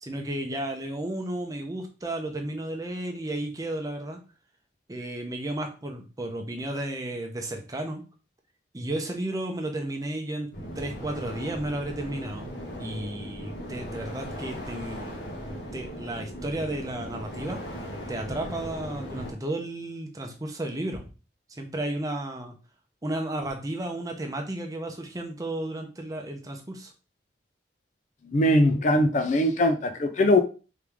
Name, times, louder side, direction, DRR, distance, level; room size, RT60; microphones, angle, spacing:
voice 1, 0.0-4.2 4.9-8.0 8.7-10.5 10.8-15.2 15.7-17.6 18.1-21.0 21.6-22.5 23.0-26.9, right 1 dB, 20° right, 3 dB, 0.7 m, -33 dB
sound 1, 10.5-19.3, equal, 90° left, 1.4 m, -38 dB
voice 2, 28.3-30.4, left 1 dB, 40° left, 8 dB, 0.4 m, -21 dB
3.7 x 3.2 x 3.4 m, 0.34 s
head